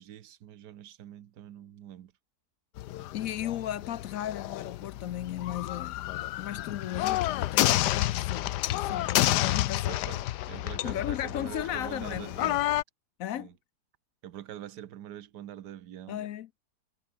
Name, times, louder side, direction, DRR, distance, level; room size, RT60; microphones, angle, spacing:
voice 1, 0.0-2.1 8.8-9.2 9.9-12.6 13.3-13.5 14.2-16.3, right 11 dB, 85° right, 1.5 m, -44 dB
sound 1, 2.8-12.8, left 15 dB, 85° left, 1.3 m, -30 dB
voice 2, 3.1-6.1 6.4-10.0 10.8-12.3 13.2-13.5 16.1-16.6, left 11 dB, 65° left, 1.0 m, -36 dB
omnidirectional pair, 1.7 m